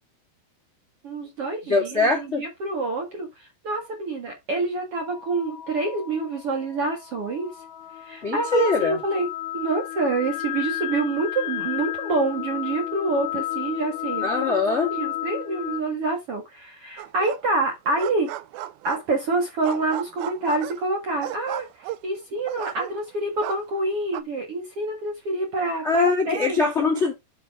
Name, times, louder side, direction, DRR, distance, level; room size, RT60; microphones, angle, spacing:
voice 1, 1.0-7.5 8.0-9.3 9.5-14.5 14.9-18.3 18.8-26.9, right 3 dB, 45° right, 2.1 m, -27 dB
voice 2, 1.6-2.4 8.2-9.0 14.2-14.9 25.8-27.1, left 3 dB, 30° left, 1.2 m, -22 dB
sound 1, 4.9-15.8, left 14 dB, 80° left, 2.4 m, -33 dB
sound 2, 17.0-17.6 17.9-19.2 19.6-23.1 23.4-24.2, right 13 dB, 80° right, 2.2 m, -35 dB
7.3 x 5.4 x 4.9 m
omnidirectional pair, 5.0 m